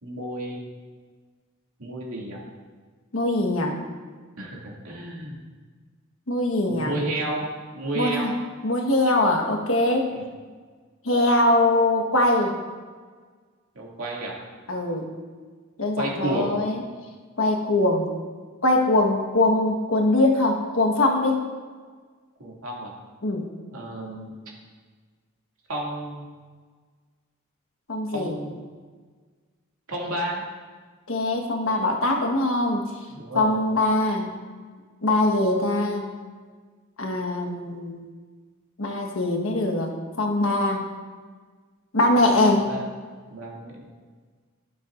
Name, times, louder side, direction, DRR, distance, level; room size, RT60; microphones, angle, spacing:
voice 1, 0.0-0.6 1.8-2.4 4.4-5.4 6.7-7.5 7.7-8.4 10.1-10.2 13.7-14.3 16.0-16.6 22.4-22.9 23.7-24.3 25.7-26.2 28.1-28.6 29.9-30.4 33.1-33.6 42.7-42.8 43.3-43.7, right 1 dB, 85° right, -3 dB, 2.4 m, -31 dB
voice 2, 3.1-3.8 6.3-6.9 7.9-8.3 8.6-10.1 11.0-12.6 14.7-15.1 15.8-16.8 17.4-18.1 18.6-21.4 23.2-23.5 27.9-28.3 31.1-32.8 33.3-34.3 35.0-36.1 37.0-38.1 38.8-39.9 40.2-40.9 41.9-42.8, left 2 dB, 70° left, 2 dB, 1.4 m, -22 dB
12.0 x 11.0 x 2.6 m, 1.5 s
head